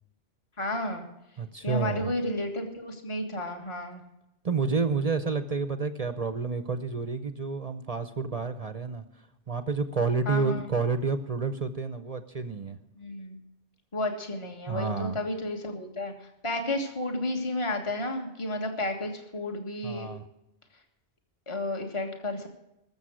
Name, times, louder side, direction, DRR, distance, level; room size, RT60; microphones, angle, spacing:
voice 1, 0.6-1.0 1.6-4.0 10.3-10.7 13.0-13.4 13.9-16.1 16.4-20.1 21.5-22.5, left 1 dB, 25° left, 4 dB, 1.8 m, -32 dB
voice 2, 1.4-2.1 4.4-9.0 9.5-12.8 14.7-15.2 19.8-20.2, right 4 dB, 35° right, 10 dB, 0.8 m, -29 dB
20.5 x 7.3 x 6.3 m, 0.86 s
omnidirectional pair, 1.2 m